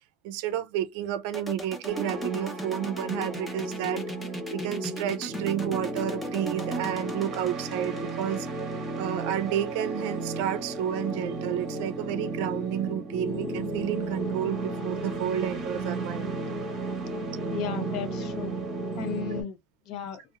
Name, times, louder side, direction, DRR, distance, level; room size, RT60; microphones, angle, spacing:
voice 1, 0.2-4.0 4.5-8.5 9.0-16.3 19.0-19.1, right 11 dB, 85° right, 0.4 m, -31 dB
sound 1, 1.3-9.1, right 1 dB, 5° left, 0.6 m, -37 dB
sound 2, 1.9-19.4, right 2 dB, 35° right, 0.9 m, -33 dB
voice 2, 17.5-18.5 19.0-19.6 19.9-20.2, left 9 dB, 55° left, 0.5 m, -35 dB
2.8 x 2.0 x 2.3 m
cardioid pair, 160°, 0 cm